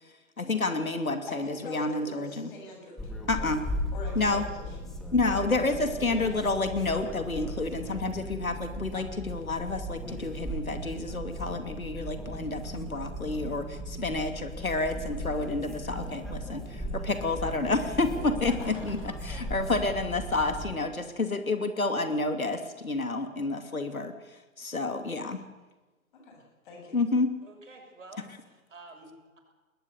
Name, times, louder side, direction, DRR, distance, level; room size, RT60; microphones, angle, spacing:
voice 1, 0.4-2.5 3.3-3.6 4.2-4.4 5.1-24.1 24.6-25.4 26.9-27.3, left 3 dB, 75° left, 8 dB, 2.7 m, -29 dB
voice 2, 1.3-3.1 3.9-4.9 5.2-5.5 18.5-18.8 26.1-27.0, left 2 dB, 35° left, 2 dB, 7.9 m, -44 dB
sound 1, 3.0-20.8, equal, ahead, 0.7 m, -37 dB
voice 3, 27.4-29.4, right 2 dB, 60° right, 2 dB, 7.1 m, -47 dB
20.5 x 20.0 x 8.2 m, 1.2 s
figure-of-eight pair, 135°, 42 cm